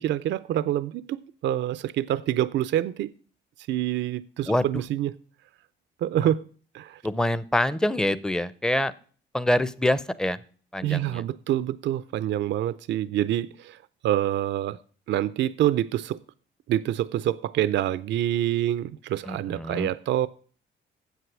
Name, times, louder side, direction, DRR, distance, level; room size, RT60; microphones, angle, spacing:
voice 1, 0.0-3.1 3.7-5.2 6.0-6.5 6.7-7.0 10.8-13.8 14.0-14.8 15.1-16.2 16.7-20.3, right 12 dB, 65° right, 16 dB, 0.4 m, -26 dB
voice 2, 7.0-8.9 9.3-10.4 10.7-11.2 19.3-19.9, left 1 dB, 5° left, 16 dB, 0.5 m, -25 dB
8.1 x 7.6 x 6.1 m, 0.43 s
cardioid pair, 90°, 20 cm